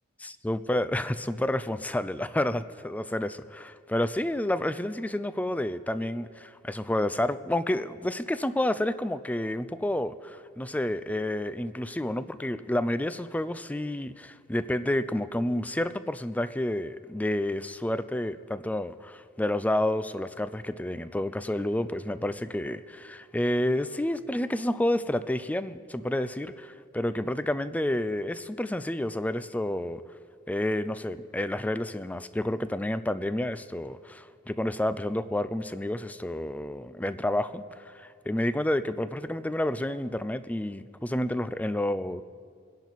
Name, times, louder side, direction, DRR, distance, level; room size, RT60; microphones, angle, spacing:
voice 1, 0.2-30.0 30.5-42.2, left 1 dB, 5° left, 13 dB, 0.4 m, -30 dB
26.5 x 10.5 x 4.1 m, 2.2 s
head